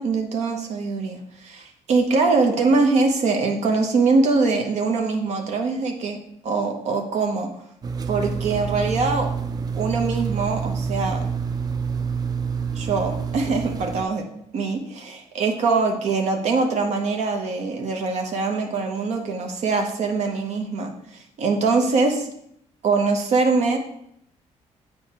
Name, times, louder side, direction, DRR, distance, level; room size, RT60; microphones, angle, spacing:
voice 1, 0.0-6.2 6.4-7.5 8.1-9.3 9.7-11.2 12.7-14.2 14.5-22.3 22.8-23.8, right 4 dB, 65° right, 3 dB, 0.7 m, -23 dB
sound 1, 7.8-14.0, right 5 dB, 30° right, 0.4 m, -27 dB
7.6 x 4.5 x 2.9 m, 0.74 s
cardioid pair, 130°, 12 cm